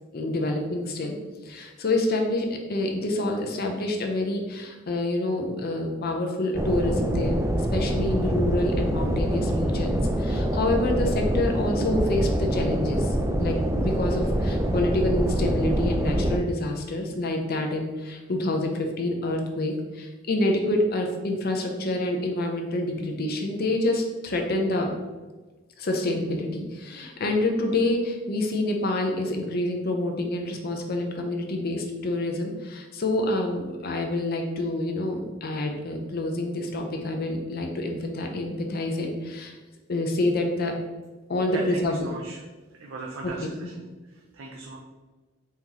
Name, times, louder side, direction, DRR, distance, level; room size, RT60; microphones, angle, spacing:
voice 1, 0.1-1.2 1.4-7.4 7.7-24.9 25.8-39.5 39.9-40.7 41.3-42.1 43.2-43.3 43.6-43.7, left 1 dB, 50° left, 3 dB, 0.6 m, -27 dB
sound 1, 6.5-16.4, right 1 dB, 15° right, 0.3 m, -25 dB
voice 2, 41.5-42.4 42.7-44.8, right 3 dB, 80° right, -1 dB, 0.5 m, -39 dB
4.2 x 3.0 x 3.8 m, 1.3 s
head